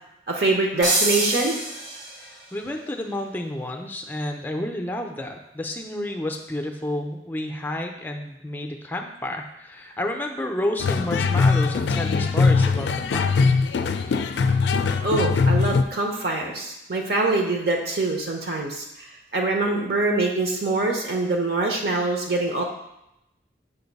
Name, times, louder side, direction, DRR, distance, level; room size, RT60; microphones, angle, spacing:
voice 1, 0.3-1.6 15.0-22.6, right 2 dB, 60° right, 1 dB, 0.8 m, -24 dB
sound 1, 0.8-2.4, right 2 dB, 85° right, 1.3 m, -25 dB
voice 2, 2.2-13.4, left 1 dB, 10° left, 3 dB, 0.5 m, -30 dB
sound 2, 10.8-15.8, left 4 dB, 75° left, 0.3 m, -21 dB
6.9 x 2.6 x 5.3 m, 0.86 s
head